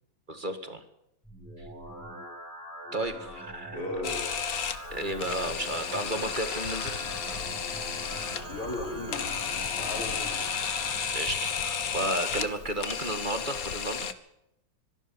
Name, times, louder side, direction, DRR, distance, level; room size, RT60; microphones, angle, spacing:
voice 1, 0.3-0.8 2.9-3.8 4.7-7.0 11.1-14.1, right 1 dB, 25° right, 8 dB, 1.9 m, -33 dB
sound 1, 1.2-11.2, equal, ahead, 6.7 m, -43 dB
voice 2, 3.7-4.2 8.5-10.4, left 2 dB, 90° left, 3 dB, 4.2 m, -36 dB
Camera, 4.0-14.1, left 7 dB, 50° left, 1.5 m, -33 dB
sound 2, 6.8-12.1, right 2 dB, 65° right, 4.1 m, -45 dB
24.5 x 12.5 x 9.6 m, 0.80 s
omnidirectional pair, 2.3 m